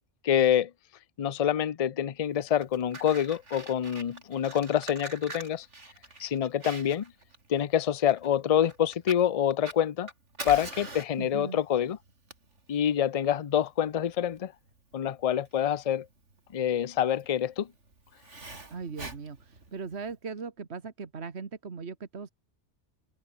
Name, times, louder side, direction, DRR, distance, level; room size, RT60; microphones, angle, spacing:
voice 1, 0.2-0.7 1.2-5.7 6.2-7.1 7.5-10.1 10.4-12.0 12.7-14.5 14.9-16.1 16.5-17.7, left 9 dB, 40° left, 0.6 m, -26 dB
Fire, 2.4-20.1, right 2 dB, 85° right, 4.3 m, -45 dB
voice 2, 11.2-11.6 18.7-22.3, right 5 dB, 65° right, 1.9 m, -39 dB
omnidirectional pair, 1.2 m